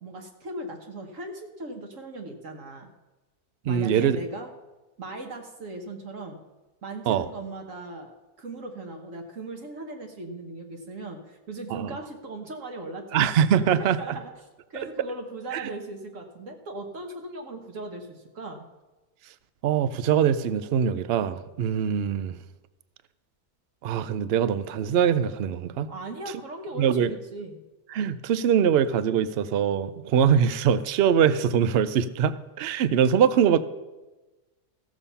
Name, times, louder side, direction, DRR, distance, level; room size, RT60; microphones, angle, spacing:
voice 1, 0.0-2.9 3.7-4.5 5.0-6.4 6.8-13.3 14.0-14.3 14.7-18.6 25.9-27.6, right 2 dB, 55° right, 3 dB, 1.5 m, -38 dB
voice 2, 3.6-4.2 7.1-7.3 11.7-12.0 13.1-14.2 15.5-15.7 19.6-22.4 23.8-25.9 26.8-27.1 27.9-33.6, right 8 dB, 70° right, 14 dB, 0.5 m, -23 dB
14.5 x 7.0 x 5.6 m, 1.1 s
omnidirectional pair, 1.7 m